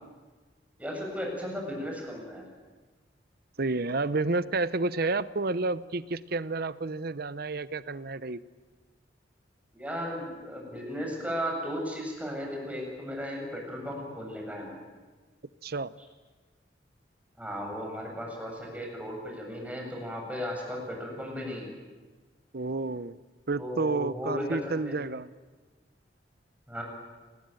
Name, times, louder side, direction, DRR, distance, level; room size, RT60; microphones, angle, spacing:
voice 1, 0.8-2.4 9.7-14.7 17.4-21.7 23.6-25.0 26.7-26.8, equal, 10° right, 0 dB, 7.6 m, -35 dB
voice 2, 3.6-8.4 15.6-15.9 22.5-23.2 23.5-25.3, right 3 dB, 55° right, 16 dB, 0.9 m, -30 dB
28.0 x 20.5 x 9.2 m, 1.3 s
head